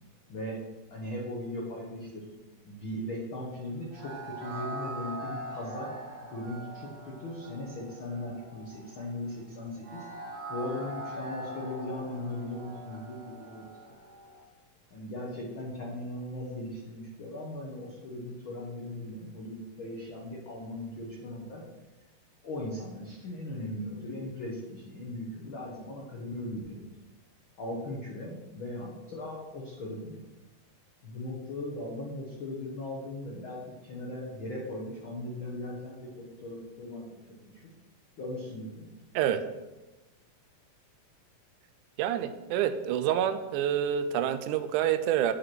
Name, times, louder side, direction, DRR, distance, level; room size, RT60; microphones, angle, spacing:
voice 1, 0.9-2.2 2.6-5.9 6.2-10.1 10.5-13.6 14.9-21.6 22.4-26.8 27.6-30.2 31.0-37.0 37.4-37.6 38.2-38.9, left 1 dB, 70° left, -3 dB, 1.1 m, -38 dB
sound 1, 3.9-14.4, right 1 dB, 45° right, 1.8 m, -42 dB
voice 2, 42.0-45.3, right 10 dB, 85° right, 9 dB, 1.8 m, -27 dB
9.2 x 5.0 x 5.9 m, 1.1 s
omnidirectional pair, 4.1 m